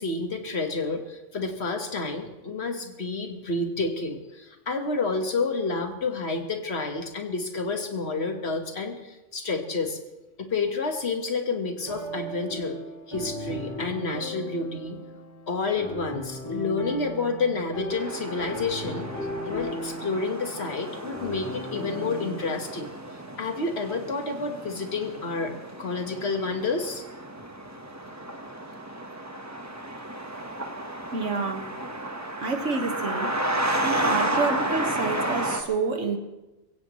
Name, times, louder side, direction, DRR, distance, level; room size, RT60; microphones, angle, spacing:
voice 1, 0.0-10.0 10.4-12.8 13.1-15.0 15.5-19.1 19.4-22.9 23.4-27.0, left 3 dB, 60° left, 5 dB, 1.8 m, -29 dB
sound 1, 11.8-22.5, equal, 20° left, 6.0 m, -37 dB
sound 2, 17.9-35.6, right 1 dB, 15° right, 1.2 m, -32 dB
voice 2, 31.1-31.7 32.4-33.3 33.8-36.2, right 4 dB, 85° right, 5 dB, 2.0 m, -28 dB
22.5 x 16.0 x 3.2 m, 1.0 s
omnidirectional pair, 1.2 m